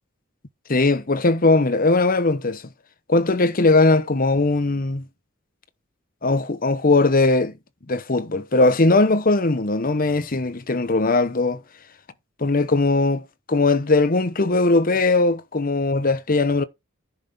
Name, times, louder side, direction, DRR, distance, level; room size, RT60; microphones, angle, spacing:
voice 1, 0.7-2.6 3.1-5.0 6.2-7.5 7.9-11.6 12.4-16.6, left 3 dB, 45° left, 1.0 m, -19 dB
10.5 x 6.1 x 3.7 m
head